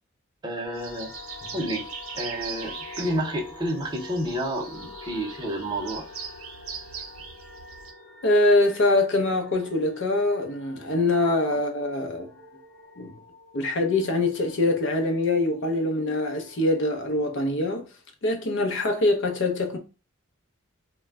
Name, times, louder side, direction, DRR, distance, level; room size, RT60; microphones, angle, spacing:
voice 1, 0.4-1.1 1.5-1.9 2.1-6.0, right 1 dB, 20° right, 0.7 m, -30 dB
sound 1, 0.6-17.1, left 4 dB, 85° left, 1.0 m, -47 dB
sound 2, 0.7-7.9, right 6 dB, 80° right, 0.6 m, -41 dB
voice 2, 8.2-12.3 13.0-13.1 13.5-17.8 18.2-19.8, left 2 dB, 60° left, 0.6 m, -24 dB
2.2 x 2.1 x 3.4 m
head